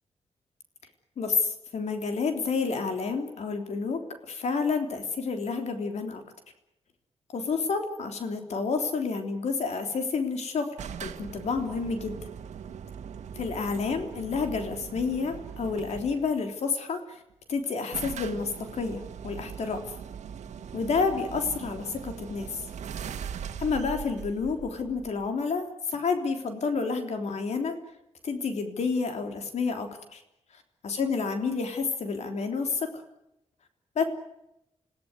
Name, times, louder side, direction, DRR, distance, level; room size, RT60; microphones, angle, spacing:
voice 1, 1.2-6.2 7.3-10.7 11.0-12.2 13.4-17.2 17.5-19.8 20.7-22.6 23.6-27.8 28.2-30.2 30.8-32.9 34.0-34.1, left 4 dB, 70° left, 6 dB, 3.4 m, -29 dB
sound 1, 10.8-16.3 17.3-17.4 17.6-17.7 17.9-25.4, right 7 dB, 85° right, 1.7 m, -40 dB
27.5 x 17.0 x 9.7 m, 0.87 s
wide cardioid pair, 120°, 12 cm